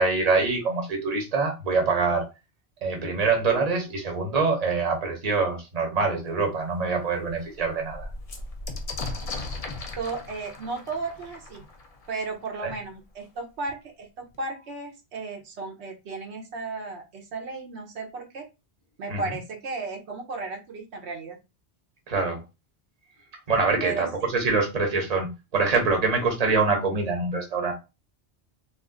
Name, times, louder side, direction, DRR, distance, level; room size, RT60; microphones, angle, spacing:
voice 1, 0.0-2.3 2.8-8.1 12.6-12.7 19.1-19.2 22.1-22.4 23.5-27.7, right 4 dB, 40° right, 1.0 m, -25 dB
sound 1, 6.2-6.3 6.8-6.9 7.2-12.7 13.7-13.8 14.0-14.6, left 3 dB, 45° left, 0.6 m, -38 dB
voice 2, 10.0-11.6 12.1-18.5 19.0-21.4 23.8-24.3, right 3 dB, 75° right, 1.0 m, -34 dB
2.5 x 2.4 x 3.6 m
omnidirectional pair, 1.1 m